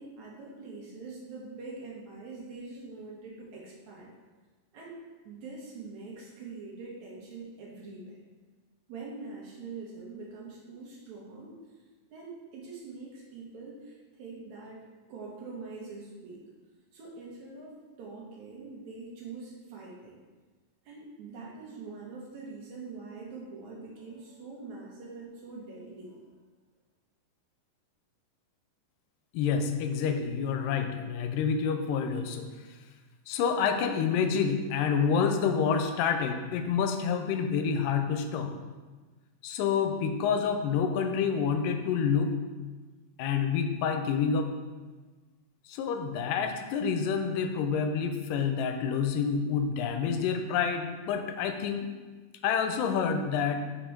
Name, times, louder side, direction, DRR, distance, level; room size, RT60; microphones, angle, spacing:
voice 1, 0.0-4.1 4.7-5.0 5.3-8.2 8.9-11.5 12.1-14.8 15.1-16.4 16.9-20.2 20.9-26.2, right 3 dB, 70° right, -3 dB, 2.1 m, -44 dB
voice 2, 29.3-32.5 33.3-38.5 39.4-42.3 43.2-44.5 45.7-51.9 52.4-53.6, left 6 dB, 85° left, 6 dB, 2.2 m, -28 dB
5.4 x 4.4 x 4.4 m, 1.3 s
omnidirectional pair, 3.8 m